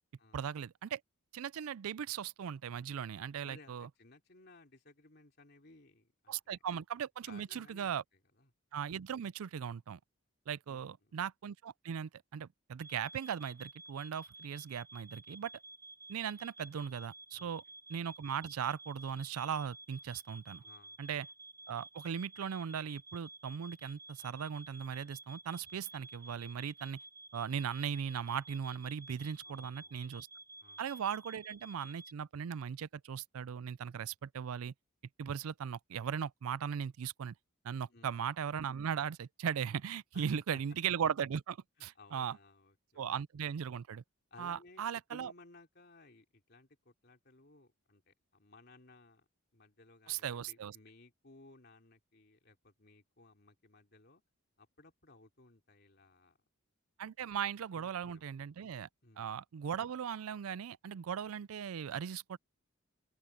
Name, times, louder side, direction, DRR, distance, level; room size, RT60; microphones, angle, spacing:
voice 1, 0.3-1.0 1.3-3.9 6.3-8.0 8.7-10.0 10.5-15.5 16.1-17.6 17.9-20.6 21.0-21.3 21.7-27.0 27.3-30.3 30.8-34.7 35.2-37.3 37.6-42.4 43.0-44.0 44.4-45.3 50.1-50.8 57.0-58.9 59.2-62.4, right 8 dB, 80° right, 0.4 m, -38 dB
voice 2, 3.4-6.6 7.3-7.9 8.3-8.5 10.7-11.2 17.4-17.5 20.6-21.0 29.4-30.0 30.6-30.8 37.9-38.2 40.1-40.6 41.9-43.1 44.3-44.8 45.1-49.3 49.5-54.2 54.6-56.4 57.2-57.3 57.7-58.3 59.0-59.3, left 2 dB, 50° left, 3.2 m, -59 dB
sound 1, 12.8-32.1, right 2 dB, 15° right, 0.6 m, -53 dB
open air
head